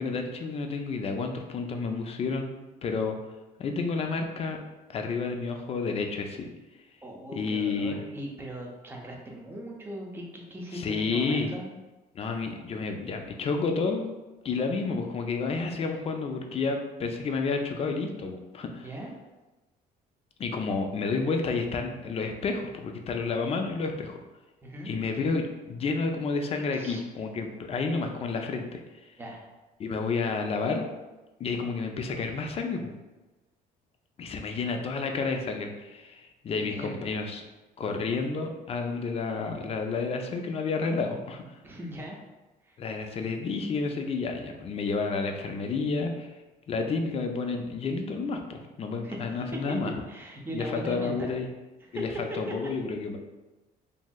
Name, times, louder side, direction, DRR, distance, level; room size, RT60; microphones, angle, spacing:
voice 1, 0.0-3.2 3.6-4.6 4.9-6.5 7.3-8.1 10.7-11.5 12.1-14.1 14.4-18.9 20.4-24.2 24.8-28.8 29.8-30.9 31.4-32.9 34.2-37.4 37.8-41.4 42.8-46.3 46.7-50.0 50.5-51.5 51.9-53.2, left 4 dB, 35° left, 4 dB, 0.4 m, -30 dB
voice 2, 7.0-11.7 18.8-19.1 24.6-24.9 26.7-27.0 29.2-29.5 36.5-37.1 41.6-42.2 42.6-42.8 49.0-49.2 49.5-49.6 50.1-51.3 51.9-52.0, right 1 dB, 15° right, -1 dB, 0.5 m, -39 dB
3.1 x 2.6 x 2.2 m, 1.1 s
cardioid pair, 110°, 17 cm